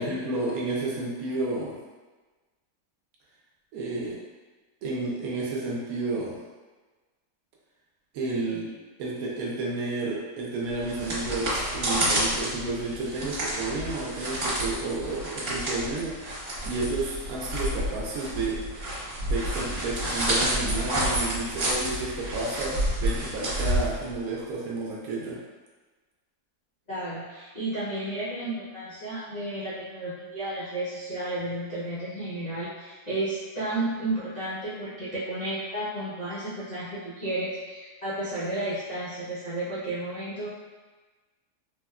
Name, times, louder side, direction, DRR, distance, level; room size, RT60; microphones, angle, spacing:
voice 1, 0.0-1.7 3.7-4.2 4.8-6.4 8.1-8.7 9.0-16.2 16.6-18.6 19.2-25.4, right 2 dB, 70° right, -3 dB, 1.0 m, -31 dB
sound 1, 10.7-24.4, right 1 dB, 40° right, 1.1 m, -29 dB
voice 2, 26.9-40.5, right 1 dB, 80° left, -11 dB, 0.3 m, -32 dB
3.4 x 2.2 x 2.3 m, 1.3 s
omnidirectional pair, 1.7 m